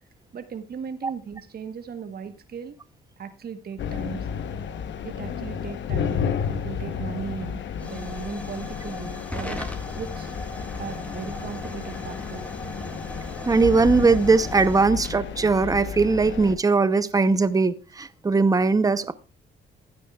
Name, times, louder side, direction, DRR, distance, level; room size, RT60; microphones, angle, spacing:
voice 1, 0.3-2.8 3.2-4.3 5.0-9.6 10.0-10.4 10.8-12.5, right 7 dB, 50° right, 1.2 m, -37 dB
sound 1, 3.8-16.5, left 7 dB, 70° left, 1.0 m, -32 dB
Hiss / Fire / Tick, 6.5-16.6, equal, 5° left, 1.9 m, -39 dB
voice 2, 13.5-19.1, right 4 dB, 15° right, 0.7 m, -20 dB
15.0 x 9.2 x 2.3 m
cardioid pair, 90°, 20 cm